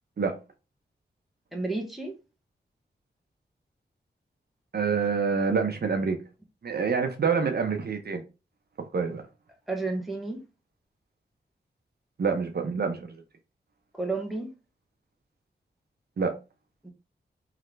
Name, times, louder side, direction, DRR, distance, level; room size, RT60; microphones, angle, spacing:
voice 1, 1.5-2.1 9.7-10.4 13.9-14.5 16.8-16.9, right 3 dB, ahead, 1.2 m, -31 dB
voice 2, 4.7-6.2 6.6-8.2 8.9-9.2 12.2-13.2 16.2-16.4, right 5 dB, 60° right, 0.8 m, -26 dB
3.7 x 3.3 x 3.1 m
wide cardioid pair, 80°, 18 cm